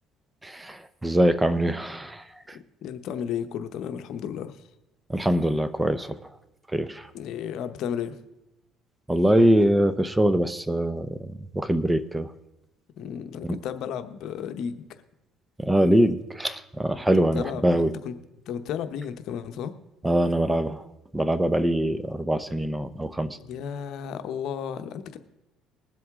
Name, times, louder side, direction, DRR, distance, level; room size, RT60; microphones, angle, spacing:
voice 1, 0.4-2.6 5.1-6.2 6.7-7.1 9.1-12.3 13.4-13.6 15.6-17.9 20.0-20.8 21.1-23.4, right 1 dB, 10° right, 13 dB, 0.7 m, -23 dB
voice 2, 2.8-4.6 7.1-8.2 13.0-14.8 17.3-18.1 18.5-19.7 23.4-25.2, left 8 dB, 65° left, 9 dB, 0.9 m, -33 dB
20.5 x 7.8 x 3.6 m, 0.94 s
cardioid pair, 105°, 0 cm